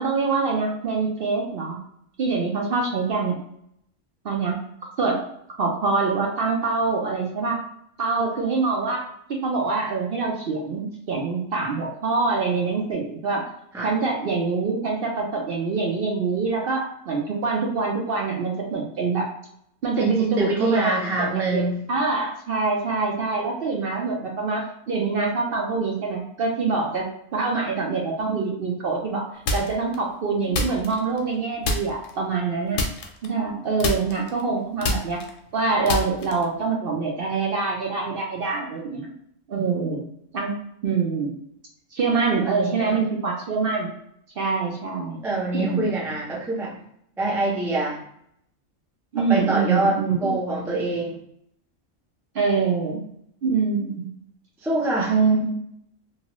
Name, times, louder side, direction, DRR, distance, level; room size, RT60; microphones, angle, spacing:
voice 1, 0.0-1.8 2.2-3.4 4.2-4.6 5.0-5.2 5.6-7.6 8.0-13.5 13.8-19.3 19.8-29.3 29.5-32.8 33.2-35.2 35.5-39.1 39.5-40.0 40.3-40.5 40.8-41.4 41.9-43.9 44.4-45.2 45.5-45.9 49.1-50.3 52.3-53.0 53.4-54.1 55.1-55.5, right 4 dB, 60° right, -1 dB, 0.6 m, -25 dB
voice 2, 20.0-21.8 42.4-43.0 45.2-46.8 47.2-48.0 49.3-51.2 54.6-55.2, right 2 dB, 5° right, -4 dB, 0.3 m, -25 dB
sound 1, 29.5-30.0 30.5-31.3 31.6-32.1 32.7-33.5 33.8-36.6, left 2 dB, 85° left, 1.0 m, -27 dB
2.9 x 2.2 x 2.9 m, 0.71 s
omnidirectional pair, 1.3 m